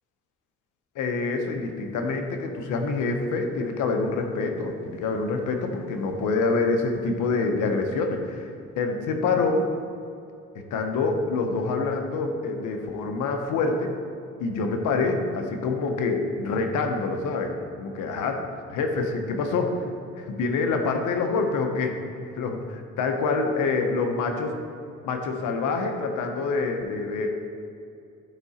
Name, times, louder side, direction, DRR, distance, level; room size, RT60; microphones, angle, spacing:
voice 1, 0.9-8.5 8.8-9.7 10.7-13.9 14.4-19.8 20.2-21.9 22.3-22.6 23.0-24.6 25.0-27.3, left 3 dB, 90° left, 4 dB, 1.0 m, -26 dB
11.5 x 4.9 x 4.2 m, 2.5 s
cardioid pair, 90°, 30 cm